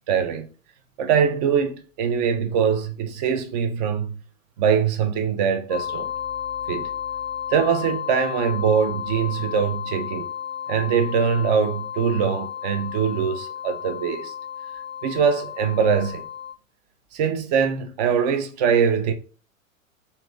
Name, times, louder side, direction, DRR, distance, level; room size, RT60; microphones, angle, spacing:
voice 1, 0.1-0.5 1.0-4.1 4.6-6.1 6.7-6.9 7.5-10.3 10.7-14.3 15.0-16.2 17.1-19.1, right 7 dB, 30° right, 0.5 m, -22 dB
sound 1, 5.7-16.5, left 9 dB, 5° left, 0.8 m, -33 dB
2.8 x 2.7 x 3.5 m
figure-of-eight pair, 95°, 41 cm